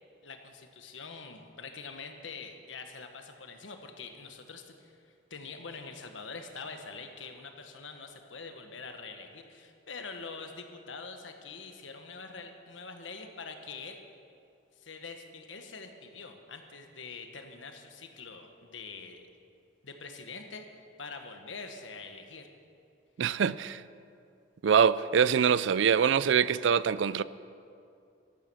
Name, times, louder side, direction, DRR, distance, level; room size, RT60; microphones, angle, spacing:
voice 1, 0.2-5.0 5.3-14.0 14.8-19.2 19.8-20.7 21.0-22.5, left 4 dB, 90° left, 1.3 m, -44 dB
voice 2, 23.2-23.8 24.6-27.2, right 7 dB, 75° right, 0.4 m, -24 dB
13.5 x 12.0 x 6.2 m
head